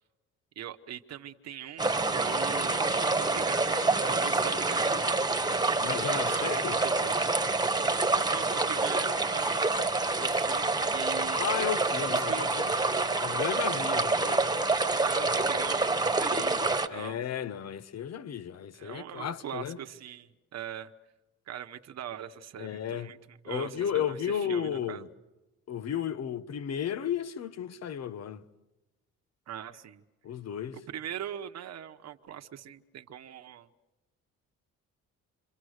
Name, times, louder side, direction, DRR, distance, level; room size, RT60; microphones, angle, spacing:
voice 1, 0.6-3.7 4.0-5.2 6.1-7.3 8.3-9.7 10.2-11.5 12.0-12.5 13.9-14.0 15.0-17.2 18.7-20.9 21.5-25.0 29.5-30.0 30.7-33.7, right 10 dB, 60° right, 1.2 m, -41 dB
sound 1, 1.8-16.9, right 3 dB, 15° right, 1.6 m, -27 dB
voice 2, 5.8-6.8 11.4-12.7 13.2-14.4 16.9-19.8 22.6-23.1 23.5-25.1 25.7-28.4 30.2-30.8, left 9 dB, 55° left, 1.2 m, -33 dB
27.5 x 24.5 x 6.6 m
cardioid pair, 90°, 30 cm